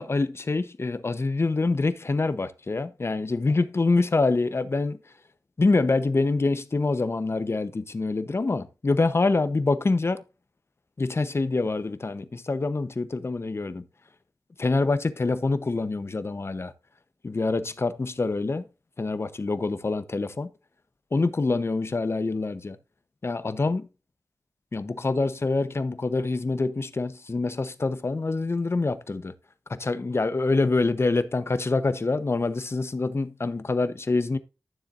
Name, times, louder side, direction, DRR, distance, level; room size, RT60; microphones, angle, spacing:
voice 1, 0.0-5.0 5.6-10.2 11.0-13.8 14.6-16.7 17.2-18.7 19.0-20.5 21.1-22.8 23.2-23.9 24.7-29.3 29.7-34.4, left 3 dB, 45° left, 0.8 m, -25 dB
12.0 x 7.2 x 2.6 m
wide cardioid pair, 75°, 6 cm